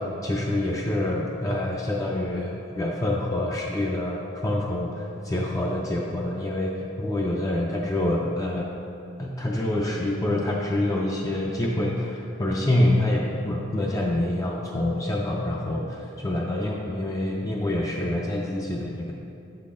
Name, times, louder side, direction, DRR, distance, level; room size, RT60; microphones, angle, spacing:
voice 1, 0.0-8.7 9.2-19.1, left 1 dB, 15° left, -2 dB, 0.3 m, -26 dB
8.0 x 3.8 x 3.7 m, 2.7 s
head